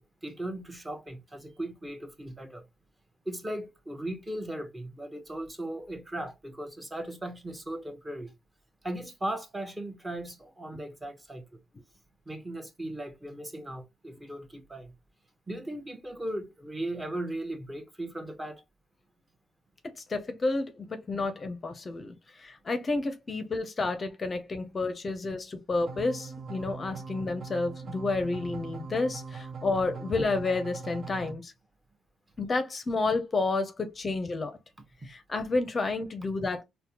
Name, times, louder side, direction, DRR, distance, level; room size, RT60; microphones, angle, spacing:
voice 1, 0.0-2.6 3.2-8.3 8.8-11.4 12.3-14.9 15.5-18.6 35.0-35.1, right 1 dB, 15° right, 0.8 m, -37 dB
voice 2, 20.0-31.5 32.4-34.5 35.0-36.6, left 3 dB, 35° left, 0.5 m, -30 dB
sound 1, 25.9-31.3, right 5 dB, 60° right, 0.5 m, -41 dB
4.1 x 2.1 x 2.8 m
cardioid pair, 90°, 0 cm